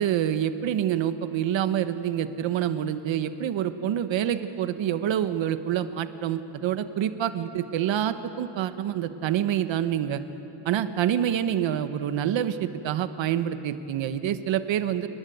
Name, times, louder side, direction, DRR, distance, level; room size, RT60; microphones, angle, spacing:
voice 1, 0.0-10.2 10.6-15.1, right 10 dB, 90° right, 11 dB, 1.3 m, -27 dB
30.0 x 19.5 x 9.4 m, 2.9 s
cardioid pair, 160°, 44 cm